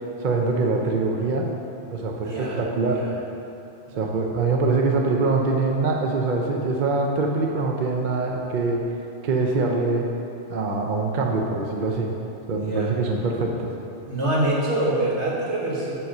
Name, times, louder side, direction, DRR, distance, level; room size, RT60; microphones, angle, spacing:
voice 1, 0.2-1.5 1.9-3.0 4.0-8.8 9.2-10.1 10.5-12.1 12.5-13.7, right 3 dB, 50° right, 1 dB, 0.7 m, -24 dB
voice 2, 2.2-3.1 3.9-4.1 12.6-12.9 14.1-15.9, right 1 dB, 70° right, -4 dB, 1.8 m, -25 dB
7.4 x 5.6 x 6.5 m, 2.7 s
omnidirectional pair, 1.2 m